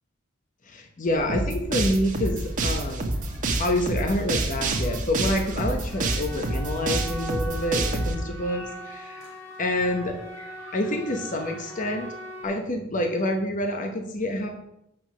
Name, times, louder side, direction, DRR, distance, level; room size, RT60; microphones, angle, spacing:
voice 1, 0.6-3.0 3.6-9.3 9.6-10.1 10.7-12.1 12.4-14.5, left 1 dB, 40° left, 3 dB, 1.0 m, -27 dB
sound 1, 1.0-1.2 1.6-12.4, right 1 dB, 65° left, 3.0 m, -42 dB
sound 2, 1.1-8.3, equal, 10° left, 1.6 m, -40 dB
sound 3, 1.3-8.1, right 2 dB, 40° right, 1.4 m, -27 dB
8.3 x 6.1 x 6.1 m, 0.80 s
head